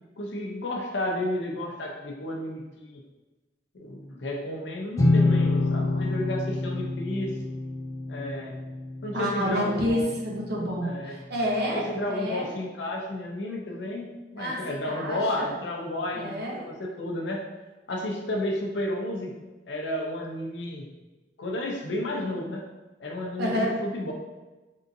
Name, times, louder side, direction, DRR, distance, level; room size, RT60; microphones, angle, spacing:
voice 1, 0.2-3.0 3.7-7.4 8.1-8.5 9.0-10.1 10.8-11.2 11.7-16.4 16.7-17.4 17.9-19.3 19.7-20.9 21.4-22.6 23.0-24.1, left 1 dB, 75° left, 0 dB, 0.6 m, -32 dB
sound 1, 5.0-10.6, left 2 dB, 20° left, 0.3 m, -27 dB
voice 2, 9.1-12.5 14.3-15.5 16.1-16.6 23.4-23.7, equal, 65° right, -3 dB, 0.8 m, -29 dB
3.6 x 2.6 x 2.6 m, 1.2 s
head